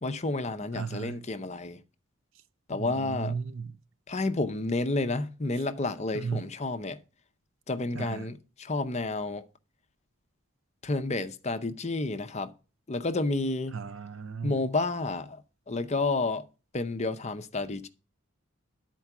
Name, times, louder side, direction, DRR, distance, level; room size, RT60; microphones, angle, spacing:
voice 1, 0.0-1.8 2.7-3.3 4.1-7.0 7.7-9.4 10.8-12.5 12.9-13.8 14.4-15.4 15.7-16.4 16.7-17.9, left 2 dB, 35° left, 0.7 m, -30 dB
voice 2, 0.7-1.2 2.7-3.7 6.1-6.4 7.9-8.3 13.7-14.6, right 5 dB, 70° right, 0.6 m, -35 dB
10.5 x 4.5 x 5.9 m
head